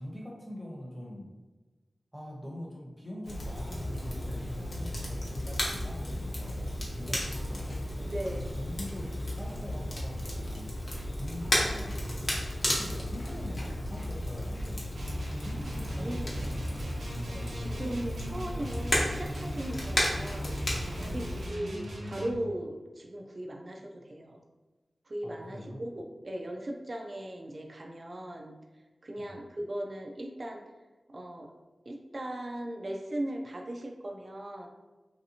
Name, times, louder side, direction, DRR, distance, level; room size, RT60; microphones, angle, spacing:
voice 1, 0.0-1.3 2.1-7.8 8.3-17.0 21.1-21.4 25.2-25.8 29.2-29.4, left 1 dB, 5° right, -3 dB, 0.8 m, -44 dB
Crackle, 3.2-21.5, left 1 dB, 60° left, 0.9 m, -34 dB
voice 2, 8.0-8.5 15.9-16.3 17.2-20.5 20.8-24.4 25.1-28.5 29.0-30.6 31.1-31.5 31.9-34.7, right 1 dB, 40° right, 2 dB, 0.4 m, -38 dB
sound 1, 14.9-22.4, equal, 85° right, 0.6 m, -39 dB
3.2 x 2.7 x 2.7 m, 1.2 s
wide cardioid pair, 100°, 0 cm